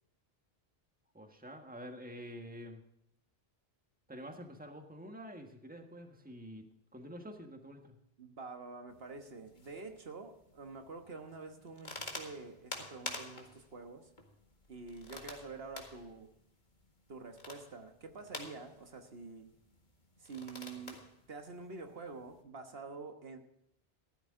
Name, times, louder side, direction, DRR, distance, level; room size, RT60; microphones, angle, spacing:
voice 1, 1.1-2.8 4.1-6.6 6.9-8.0, equal, 10° right, 5 dB, 1.5 m, -48 dB
voice 2, 8.2-14.1 14.7-16.3 17.1-19.5 20.2-21.0 21.3-23.4, right 4 dB, 70° right, 6 dB, 1.5 m, -47 dB
sound 1, 8.9-22.4, left 2 dB, 50° left, 2.0 m, -50 dB
14.5 x 12.5 x 3.8 m, 0.77 s
omnidirectional pair, 1.1 m